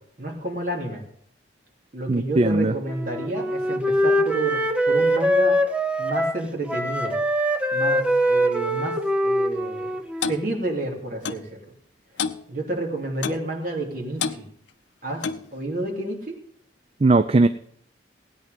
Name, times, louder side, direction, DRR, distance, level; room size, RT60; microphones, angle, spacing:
voice 1, 0.2-1.0 1.9-5.6 6.0-7.1 7.7-9.0 9.2-9.9 10.3-11.6 12.5-14.4 15.0-15.2 15.5-16.3, right 2 dB, 50° right, -1 dB, 3.1 m, -30 dB
voice 2, 2.1-2.7 17.0-17.5, right 2 dB, 30° right, 10 dB, 0.4 m, -18 dB
Wind instrument woodwind instrument, 2.9-10.5, equal, 5° right, 0.8 m, -23 dB
Clock, 10.2-10.4 11.2-11.5 12.2-12.4 13.2-13.5 14.2-14.4 15.2-15.5, left 6 dB, 85° left, 0.7 m, -28 dB
16.5 x 9.4 x 5.2 m, 0.63 s
head